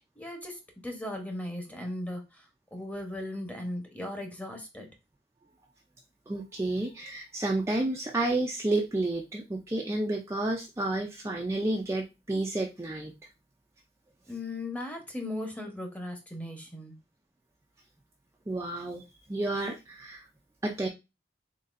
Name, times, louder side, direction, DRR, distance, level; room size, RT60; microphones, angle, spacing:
voice 1, 0.2-2.4 2.7-4.9 14.3-17.0, left 1 dB, 10° left, 3 dB, 0.9 m, -37 dB
voice 2, 6.3-13.1 18.5-20.3 20.6-20.9, right 2 dB, 15° right, 0 dB, 0.4 m, -30 dB
4.0 x 3.8 x 2.5 m, 0.25 s
head